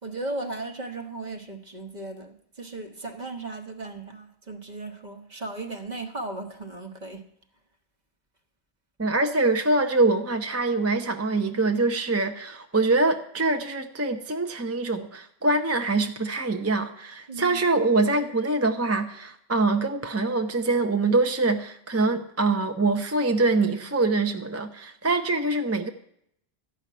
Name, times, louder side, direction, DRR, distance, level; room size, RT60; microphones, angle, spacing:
voice 1, 0.0-7.3 17.3-17.6, right 2 dB, 45° right, 1.2 m, -36 dB
voice 2, 9.0-25.9, right 3 dB, 15° right, 0.6 m, -24 dB
13.5 x 5.8 x 9.2 m
omnidirectional pair, 1.1 m